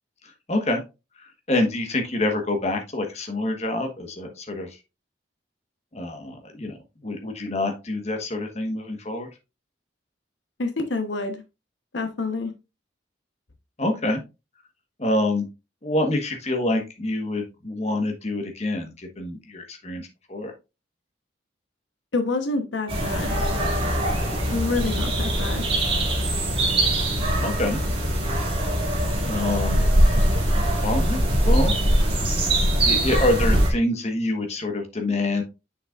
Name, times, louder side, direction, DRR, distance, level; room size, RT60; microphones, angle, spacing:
voice 1, 0.2-0.8 1.2-4.8 5.9-9.3 13.8-14.2 15.0-15.5 15.8-20.5 27.4-27.8 29.2-29.8 30.8-31.8 32.8-35.4, left 2 dB, 35° left, 4 dB, 1.3 m, -26 dB
voice 2, 10.6-11.4 11.9-12.5 22.1-23.4 24.5-25.7, left 3 dB, 75° left, 6 dB, 1.1 m, -27 dB
sound 1, 22.9-33.7, right 1 dB, 30° right, 2.3 m, -22 dB
7.8 x 6.5 x 2.5 m, 0.26 s
head